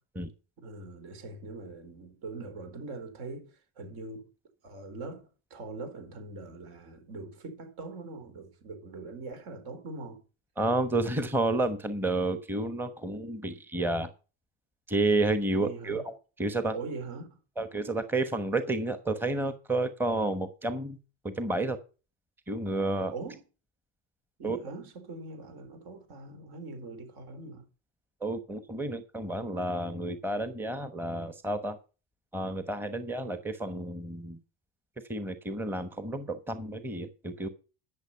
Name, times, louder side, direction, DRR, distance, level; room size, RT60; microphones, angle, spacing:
voice 1, 0.6-4.3 4.6-10.2 15.5-16.1 16.7-17.4 23.1-23.4 24.4-27.7, right 3 dB, 65° right, 4.2 m, -42 dB
voice 2, 10.6-14.1 14.9-16.1 16.4-16.7 17.6-21.0 21.2-21.8 22.5-23.1 24.4-24.6 28.2-31.8 32.3-34.4 35.1-37.5, right 2 dB, 5° right, 1.0 m, -30 dB
11.5 x 6.9 x 5.5 m
supercardioid pair, 105°, 39 cm